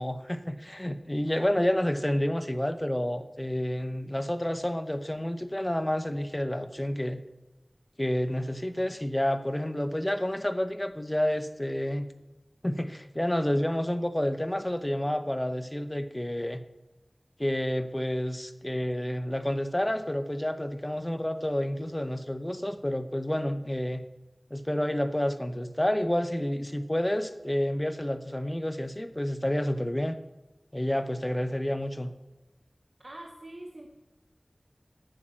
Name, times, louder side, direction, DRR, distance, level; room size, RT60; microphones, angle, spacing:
voice 1, 0.0-7.2 8.0-12.1 12.6-16.6 17.4-24.0 24.5-30.2 30.7-32.1, left 1 dB, 20° left, 10 dB, 0.8 m, -29 dB
voice 2, 33.0-33.9, right 1 dB, 50° right, 1 dB, 1.1 m, -44 dB
8.9 x 7.1 x 7.5 m, 1.0 s
wide cardioid pair, 55°, 0 cm